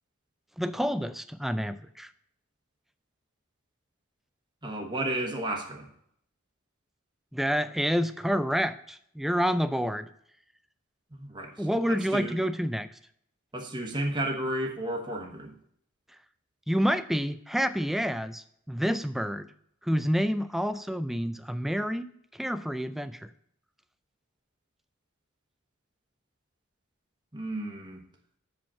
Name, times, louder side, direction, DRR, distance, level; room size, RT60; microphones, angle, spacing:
voice 1, 0.6-2.1 7.3-10.1 11.6-12.9 16.7-19.5 19.9-22.1 22.4-23.2, equal, ahead, 11 dB, 0.3 m, -28 dB
voice 2, 4.6-5.9 11.1-11.5 11.9-12.4 13.5-15.5 27.3-28.0, right 1 dB, 20° right, 1 dB, 1.1 m, -32 dB
7.4 x 5.1 x 7.0 m, 0.70 s
head